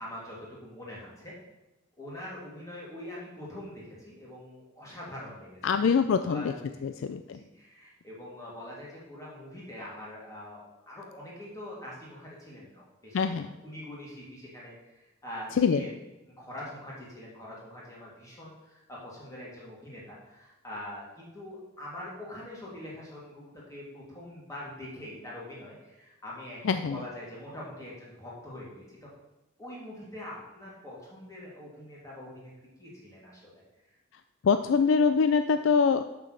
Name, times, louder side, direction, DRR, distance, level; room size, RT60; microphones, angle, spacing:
voice 1, 0.0-1.3 2.0-5.6 6.2-10.6 10.9-15.9 16.4-29.1 29.6-32.5 32.8-33.6, left 1 dB, 15° left, -5 dB, 2.5 m, -44 dB
voice 2, 5.6-6.5 6.8-7.4 13.1-13.5 15.6-15.9 26.6-27.0 34.4-36.0, left 5 dB, 65° left, 9 dB, 0.3 m, -24 dB
6.5 x 6.1 x 6.5 m, 0.99 s
head